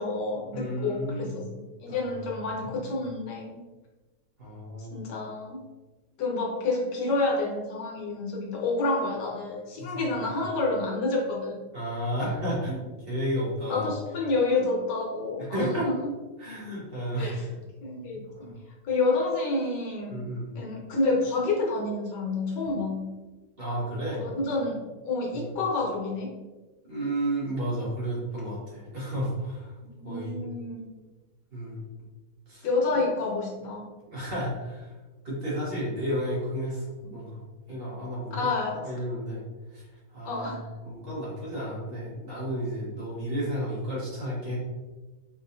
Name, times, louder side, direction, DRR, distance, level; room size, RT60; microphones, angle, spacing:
voice 1, 0.0-3.6 4.9-5.6 6.2-11.7 13.7-15.9 17.2-17.5 17.8-18.5 18.8-20.3 20.5-23.1 24.2-26.3 29.8-31.0 32.6-33.9 37.0-37.1 38.3-38.9 40.2-40.7, left 3 dB, 90° left, -1 dB, 1.6 m, -29 dB
voice 2, 0.5-1.4 1.9-2.0 2.6-2.7 4.4-5.0 9.8-10.4 11.7-13.9 15.4-15.9 16.4-17.3 18.4-18.6 20.1-20.5 23.6-24.2 25.3-25.5 26.9-29.7 30.0-30.4 31.5-31.8 32.5-32.6 34.1-34.9 35.2-37.4 37.7-38.3 38.8-39.4 39.7-39.8 40.1-44.6, equal, 35° right, -7 dB, 1.6 m, -32 dB
4.4 x 3.9 x 2.6 m, 1.2 s
omnidirectional pair, 1.8 m